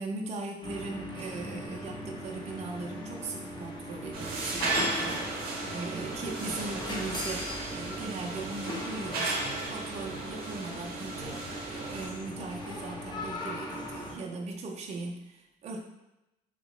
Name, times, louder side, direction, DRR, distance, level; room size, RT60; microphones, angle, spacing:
voice 1, 0.0-15.8, right 3 dB, 40° right, 0 dB, 0.5 m, -39 dB
sound 1, 0.6-14.1, left 1 dB, 25° left, 0.8 m, -39 dB
sound 2, 4.1-12.1, right 2 dB, 65° right, 0.8 m, -35 dB
2.9 x 2.8 x 3.1 m, 0.94 s
cardioid pair, 110°, 17 cm